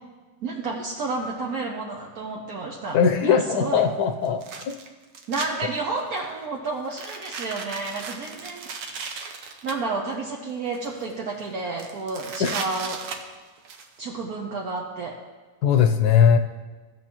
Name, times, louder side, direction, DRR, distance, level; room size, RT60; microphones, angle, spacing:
voice 1, 0.4-3.8 5.3-9.2 9.6-13.0 14.0-15.2, right 3 dB, 65° right, -1 dB, 1.2 m, -31 dB
voice 2, 2.9-4.8 12.4-12.6 15.6-16.4, left 7 dB, 70° left, 6 dB, 1.2 m, -20 dB
sound 1, 2.9-3.0 4.2-5.5 6.0-6.3 6.8-9.7 10.5-11.1 11.4-11.5 11.8-13.9, right 5 dB, 85° right, 1.5 m, -36 dB
15.5 x 7.2 x 2.9 m, 1.4 s
omnidirectional pair, 1.9 m